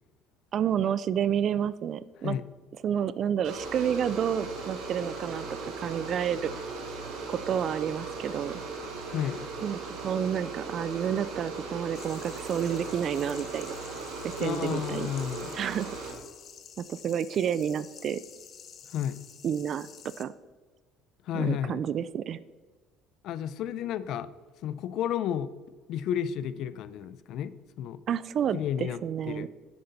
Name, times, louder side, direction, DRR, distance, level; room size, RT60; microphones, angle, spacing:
voice 1, 0.5-2.4 2.8-6.5 7.3-8.6 9.6-13.7 14.2-15.1 15.5-15.9 16.8-18.2 19.4-19.9 20.2-20.3 21.3-22.4 28.1-29.5, right 8 dB, 45° right, 17 dB, 0.4 m, -30 dB
sound 1, 3.4-16.1, right 3 dB, 75° right, 2.8 m, -38 dB
voice 2, 9.1-9.4 14.4-15.5 18.9-19.2 21.3-21.8 23.2-24.3 24.6-25.5 25.9-28.0 28.5-29.0 29.3-29.5, left 9 dB, 60° left, 15 dB, 0.6 m, -32 dB
sound 2, 11.9-20.2, left 8 dB, 45° left, 1.0 m, -49 dB
10.5 x 7.8 x 4.1 m, 1.4 s
cardioid pair, 115°, 0 cm